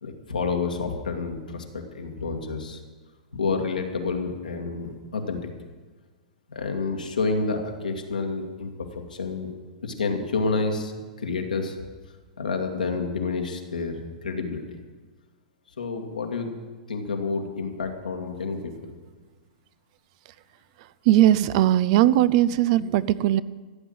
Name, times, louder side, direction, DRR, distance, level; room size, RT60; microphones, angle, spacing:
voice 1, 0.0-2.8 3.3-5.5 6.5-8.7 9.1-9.5 9.8-10.9 11.2-11.8 12.4-14.8 15.8-16.5 16.9-18.9, left 4 dB, 90° left, 3 dB, 2.2 m, -29 dB
voice 2, 21.0-23.4, right 13 dB, 50° right, 17 dB, 0.6 m, -19 dB
14.5 x 8.4 x 7.9 m, 1.4 s
hypercardioid pair, 110°, 4 cm